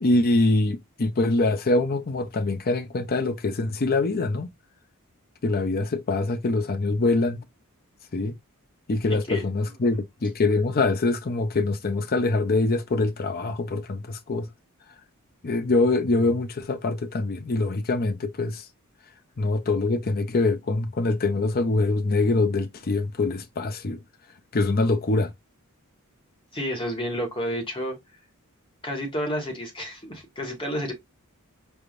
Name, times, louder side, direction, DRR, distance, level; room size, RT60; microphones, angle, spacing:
voice 1, 0.0-4.5 5.4-7.4 8.1-8.3 8.9-14.5 15.4-18.6 19.4-24.0 24.5-25.3, left 2 dB, 45° left, 0.6 m, -24 dB
voice 2, 9.3-9.7 26.5-28.0 28.8-30.9, equal, 25° left, 1.5 m, -30 dB
4.5 x 3.5 x 2.5 m
head